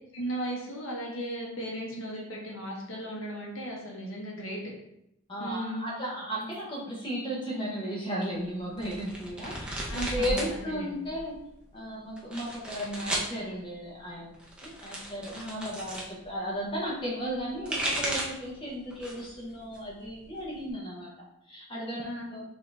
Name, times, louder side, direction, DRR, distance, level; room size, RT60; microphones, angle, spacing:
voice 1, 0.1-4.6 5.4-5.9 9.9-11.0 15.3-15.7 22.0-22.2, right 1 dB, 65° left, -2 dB, 1.2 m, -36 dB
voice 2, 5.3-11.4 11.7-21.1 21.5-22.4, equal, 25° left, -4 dB, 0.9 m, -35 dB
sound 1, 8.8-10.5 10.8-11.5 12.2-13.3 14.3-16.1 17.4-18.5 18.9-19.4 19.7-20.7, right 1 dB, 5° right, 0.6 m, -34 dB
5.5 x 2.8 x 3.4 m, 0.80 s
head